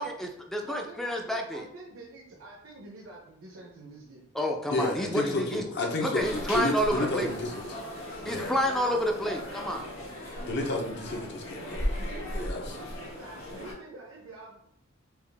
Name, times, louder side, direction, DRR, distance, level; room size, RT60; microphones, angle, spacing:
voice 1, 0.0-1.7 4.3-5.6 6.0-7.3 8.2-9.9, equal, ahead, 1 dB, 0.4 m, -29 dB
voice 2, 0.6-4.2 4.7-5.4 6.0-7.8 8.7-9.5 12.0-14.7, right 2 dB, 75° right, -3 dB, 0.8 m, -47 dB
voice 3, 4.7-7.7 8.2-8.6 10.4-11.9 12.3-12.7, left 2 dB, 55° left, 1 dB, 0.8 m, -31 dB
sound 1, 6.2-13.7, left 1 dB, 80° left, 1.4 m, -37 dB
4.6 x 2.4 x 3.4 m, 0.71 s
head